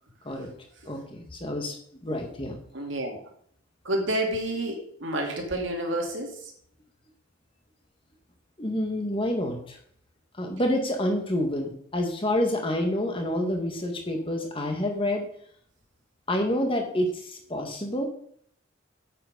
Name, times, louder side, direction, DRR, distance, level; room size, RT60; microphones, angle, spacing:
voice 1, 0.9-1.8 2.0-2.6 8.6-9.8 10.4-15.3 16.3-18.0, left 1 dB, 25° left, 3 dB, 1.9 m, -28 dB
voice 2, 2.7-3.2 3.8-6.4, right 1 dB, 65° right, 2 dB, 2.6 m, -29 dB
8.8 x 8.1 x 5.2 m, 0.63 s
head